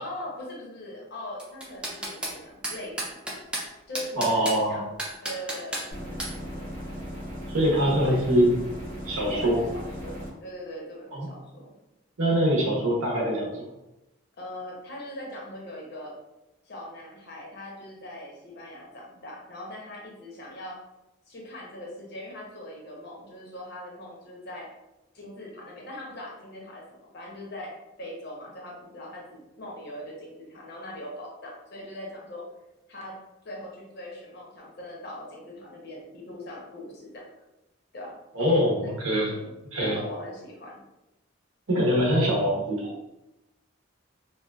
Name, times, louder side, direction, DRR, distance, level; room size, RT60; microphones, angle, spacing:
voice 1, 0.0-3.2 3.9-4.9 5.2-6.7 7.7-8.4 9.3-11.7 14.4-16.2 16.7-20.8 21.3-24.7 25.1-32.4 32.9-33.2 33.4-37.2 37.9-38.1 38.8-38.9 39.3-40.8, left 1 dB, 50° left, -2 dB, 0.6 m, -41 dB
sound 1, 1.4-2.4 2.6-3.6 4.0-4.6 5.0-5.9 6.2-6.3, right 1 dB, 5° right, 0.3 m, -32 dB
voice 2, 4.2-4.8 7.5-8.6 9.1-9.6 11.1-11.3 12.2-13.7 38.3-39.3 39.7-40.0 41.7-42.9, equal, 80° right, -2 dB, 0.8 m, -23 dB
sound 2, 5.9-10.3, equal, 45° right, 0.7 m, -37 dB
2.7 x 2.2 x 2.2 m, 0.94 s
head